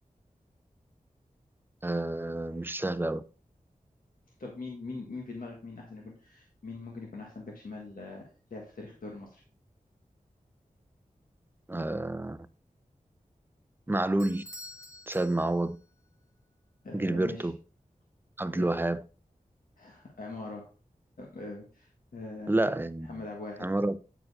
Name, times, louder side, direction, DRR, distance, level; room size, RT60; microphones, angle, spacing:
voice 1, 1.8-3.2 11.7-12.4 13.9-14.4 15.1-15.8 16.9-17.6 18.4-19.0 22.5-23.2 23.6-24.0, right 2 dB, 15° right, 0.5 m, -29 dB
voice 2, 4.4-9.4 16.8-17.5 18.5-18.7 19.8-20.7 21.2-22.6 23.0-23.7, left 3 dB, 80° left, 1.5 m, -42 dB
Bell / Doorbell, 14.2-15.9, left 1 dB, 20° left, 1.1 m, -48 dB
9.0 x 4.3 x 4.1 m
wide cardioid pair, 65°, 14 cm